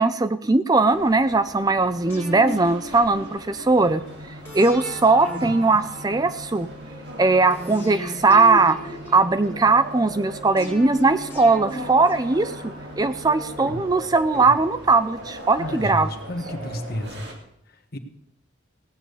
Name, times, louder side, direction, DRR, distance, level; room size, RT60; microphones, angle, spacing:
voice 1, 0.0-4.0 4.5-6.7 7.2-16.1, right 3 dB, 20° right, 12 dB, 0.4 m, -19 dB
sound 1, 0.9-17.3, right 1 dB, 55° right, 2.9 m, -40 dB
sound 2, 2.1-3.7 4.4-6.6 7.5-9.7 10.6-12.9 13.6-15.2 15.5-15.6, equal, 15° left, 4.9 m, -37 dB
sound 3, 3.8-13.8, left 1 dB, 85° right, 2.0 m, -44 dB
voice 2, 15.6-17.3 17.9-18.0, left 1 dB, 50° left, 6 dB, 1.5 m, -31 dB
17.5 x 7.3 x 8.3 m, 0.73 s
head